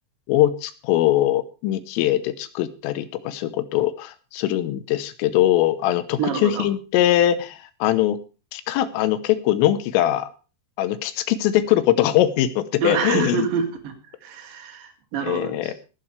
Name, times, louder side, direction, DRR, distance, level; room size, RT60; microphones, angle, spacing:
voice 1, 0.3-8.2 8.5-10.3 10.8-13.5 15.2-15.7, left 13 dB, 80° left, 12 dB, 3.5 m, -21 dB
voice 2, 6.2-6.6 12.8-13.9 14.2-15.7, right 6 dB, 50° right, 5 dB, 3.4 m, -26 dB
19.0 x 11.0 x 3.3 m, 0.34 s
omnidirectional pair, 5.8 m